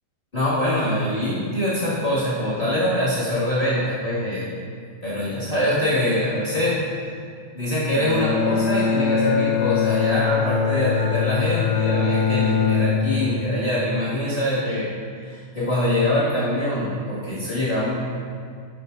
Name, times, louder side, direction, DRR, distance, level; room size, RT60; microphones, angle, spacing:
voice 1, 0.3-4.5 5.0-6.8 7.5-14.9 15.2-18.0, left 1 dB, 40° left, -12 dB, 0.7 m, -24 dB
Bowed string instrument, 7.9-13.4, left 6 dB, 80° left, 2.5 m, -22 dB
11.0 x 8.7 x 2.7 m, 2.1 s
omnidirectional pair, 4.9 m